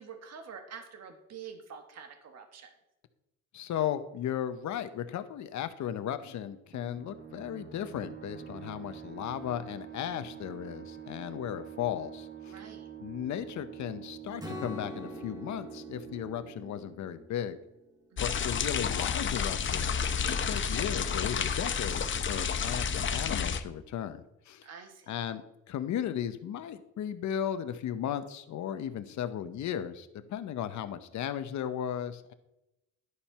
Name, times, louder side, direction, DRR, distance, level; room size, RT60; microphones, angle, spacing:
voice 1, 0.0-2.7 12.5-12.9 18.1-18.4 24.6-25.2, right 6 dB, 60° right, 5 dB, 1.6 m, -47 dB
voice 2, 3.5-12.5 13.0-17.6 18.2-24.7 25.1-32.3, left 10 dB, 70° left, 10 dB, 0.9 m, -36 dB
sound 1, 6.7-18.0, right 10 dB, 35° right, 1.2 m, -46 dB
Strum, 14.4-18.6, left 2 dB, 15° right, 2.0 m, -45 dB
sound 2, 18.2-23.6, left 6 dB, 40° left, 0.7 m, -30 dB
11.0 x 4.4 x 5.5 m, 0.91 s
cardioid pair, 90°, 30 cm